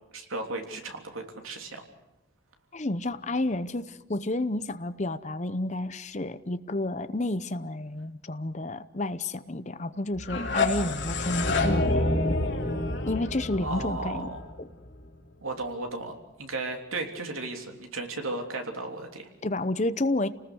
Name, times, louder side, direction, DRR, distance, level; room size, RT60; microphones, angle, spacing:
voice 1, 0.1-1.8 13.6-14.4 15.4-16.1 16.4-19.3, right 2 dB, 85° right, 3 dB, 3.4 m, -35 dB
voice 2, 2.7-12.1 13.1-14.3 14.6-14.7 19.4-20.3, left 2 dB, 35° left, 12 dB, 0.8 m, -30 dB
sound 1, 10.2-15.1, left 2 dB, 60° left, 3.1 m, -28 dB
29.0 x 19.5 x 6.4 m, 1.0 s
head